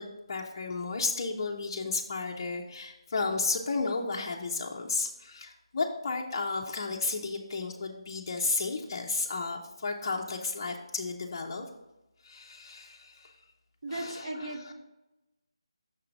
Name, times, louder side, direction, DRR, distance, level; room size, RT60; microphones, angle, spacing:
voice 1, 0.0-11.7 12.2-13.3 13.9-14.7, left 3 dB, 35° left, -1 dB, 0.5 m, -33 dB
voice 2, 13.8-14.7, right 1 dB, 60° right, 0 dB, 1.6 m, -37 dB
5.9 x 3.7 x 5.8 m, 0.99 s
figure-of-eight pair, 170°, 3 cm